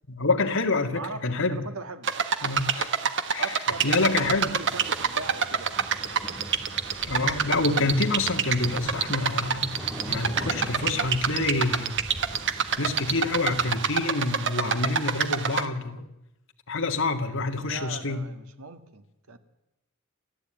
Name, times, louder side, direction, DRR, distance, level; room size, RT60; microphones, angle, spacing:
voice 1, 0.1-1.7 2.4-2.9 3.3-3.5 3.8-4.5 7.1-12.0 12.8-16.0 16.7-18.3, left 3 dB, 65° left, 4 dB, 2.2 m, -27 dB
voice 2, 0.9-2.1 3.4-5.9 17.0-19.4, right 3 dB, 85° right, 9 dB, 2.0 m, -40 dB
sound 1, 2.0-15.7, right 7 dB, 60° right, 1.5 m, -27 dB
sound 2, 3.7-13.9, equal, 5° right, 2.4 m, -41 dB
29.5 x 13.5 x 9.1 m, 0.94 s
head